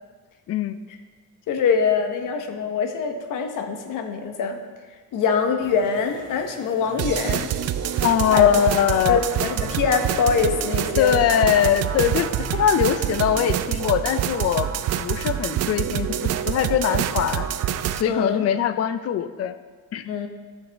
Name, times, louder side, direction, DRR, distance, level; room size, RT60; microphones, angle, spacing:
voice 1, 1.5-4.6 5.1-7.5 8.3-8.5 9.1-11.3 18.0-18.4 20.0-20.3, left 5 dB, 85° left, 5 dB, 1.0 m, -23 dB
sound 1, 5.6-13.5, right 2 dB, 40° right, 2.3 m, -41 dB
sound 2, 7.0-18.0, right 10 dB, 55° right, 0.4 m, -26 dB
voice 2, 8.0-9.2 11.0-14.7 15.0-17.5 17.9-19.5 19.9-20.1, left 9 dB, 50° left, 12 dB, 0.5 m, -22 dB
13.5 x 6.6 x 3.4 m, 1.5 s
cardioid pair, 165°, 31 cm